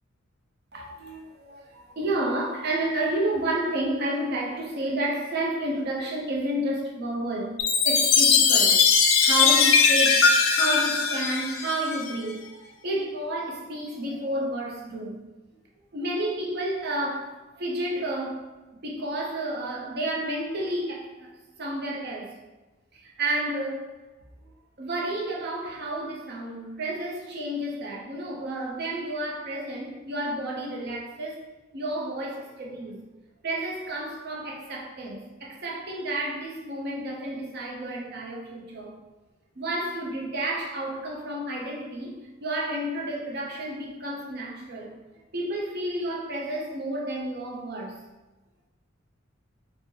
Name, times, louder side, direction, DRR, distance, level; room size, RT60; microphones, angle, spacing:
voice 1, 0.7-8.8 9.2-10.2 10.5-15.2 15.9-21.3 21.6-22.3 22.9-23.8 24.4-24.5 24.8-31.4 31.7-33.0 33.4-39.0 39.6-45.0 45.3-48.0, right 1 dB, 55° right, 0.6 m, -31 dB
Chime, 7.6-12.1, left 5 dB, 70° left, 0.4 m, -20 dB
2.9 x 2.0 x 3.6 m
head